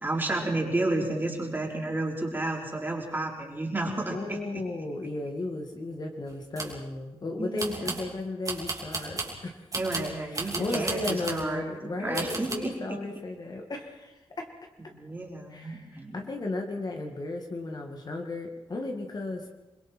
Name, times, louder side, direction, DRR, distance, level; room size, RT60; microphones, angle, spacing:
voice 1, 0.0-4.4 7.4-8.0 9.7-11.6 12.0-12.7 14.9-16.2, right 2 dB, 20° right, -1 dB, 4.3 m, -31 dB
voice 2, 4.1-9.6 10.2-14.5 15.5-19.5, left 2 dB, 45° left, 2 dB, 2.2 m, -35 dB
sound 1, 6.3-6.8 7.6-8.1 8.5-9.4 9.7-11.5 12.1-12.5, right 3 dB, 35° right, 3.2 m, -34 dB
28.0 x 22.0 x 4.5 m, 1.0 s
wide cardioid pair, 160°, 10 cm